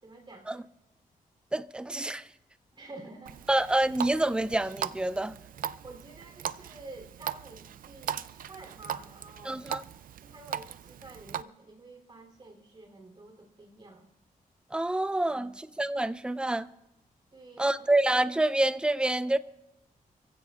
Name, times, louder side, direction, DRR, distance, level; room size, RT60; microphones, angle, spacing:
voice 1, 0.0-0.5 2.7-3.4 3.9-4.0 5.8-9.6 10.2-14.1 15.3-15.6 17.3-17.8, right 2 dB, 30° right, 3.3 m, -49 dB
voice 2, 1.5-2.3 3.5-5.3 9.4-9.8 14.7-16.7 17.6-19.4, right 1 dB, 5° right, 0.5 m, -27 dB
Water tap faucet, 3.3-11.4, right 9 dB, 75° right, 0.4 m, -39 dB
28.5 x 15.5 x 2.4 m
wide cardioid pair, 115°, 15 cm